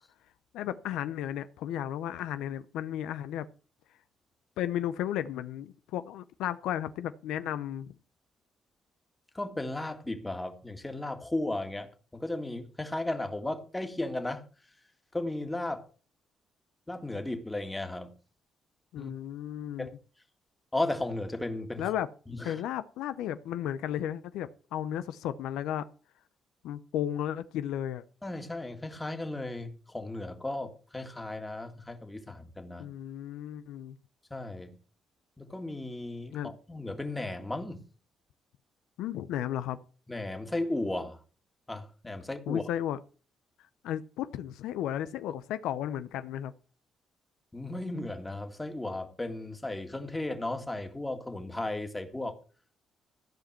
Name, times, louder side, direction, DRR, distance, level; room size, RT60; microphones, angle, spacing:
voice 1, 0.5-3.5 4.6-7.9 18.9-19.9 21.8-22.1 22.4-25.9 26.6-28.0 32.8-34.0 36.3-36.5 39.0-39.8 42.5-43.0 43.8-46.5, left 11 dB, 90° left, 0.6 m, -34 dB
voice 2, 9.3-14.4 15.1-15.9 16.9-18.1 19.0-19.1 19.8-19.9 20.7-21.9 22.3-22.6 28.2-32.9 34.3-34.7 35.4-37.8 40.1-41.2 41.7-42.6 47.5-52.4, left 2 dB, 15° left, 2.0 m, -35 dB
14.5 x 5.1 x 7.5 m
cardioid pair, 90°, 0 cm